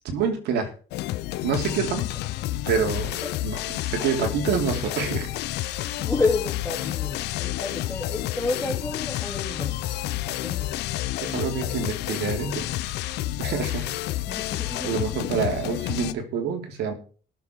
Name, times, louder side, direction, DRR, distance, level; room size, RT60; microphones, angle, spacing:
voice 1, 0.0-0.7 1.4-2.0 2.7-3.6 3.9-5.3 5.6-5.7 11.2-12.7 13.4-13.9 14.8-16.9, right 6 dB, 80° right, 4 dB, 3.4 m, -27 dB
sound 1, 0.9-16.1, left 15 dB, 80° left, 0.8 m, -30 dB
voice 2, 6.0-9.8 10.4-10.8 14.3-15.5, left 3 dB, 10° left, -2 dB, 2.8 m, -30 dB
18.5 x 7.3 x 4.7 m, 0.40 s
cardioid pair, 110°, 17 cm